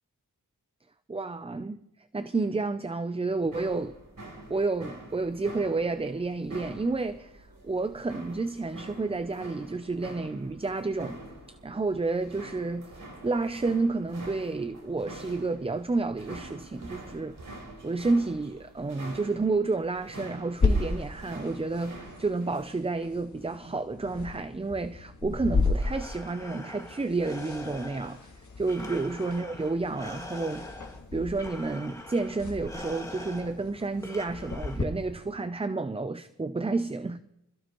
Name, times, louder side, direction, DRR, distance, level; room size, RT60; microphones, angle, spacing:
voice 1, 1.1-1.8 2.1-4.0 4.5-11.2 11.5-12.9 13.2-17.4 17.8-28.2 28.6-30.7 31.1-37.2, right 3 dB, 15° right, 0.5 m, -30 dB
sound 1, 3.4-22.6, right 1 dB, 60° right, 4.7 m, -46 dB
sound 2, 20.6-34.8, left 3 dB, 55° left, 1.9 m, -34 dB
Breathing, 25.6-35.2, left 1 dB, 10° left, 2.0 m, -44 dB
26.0 x 15.0 x 3.0 m
wide cardioid pair, 115°, 35 cm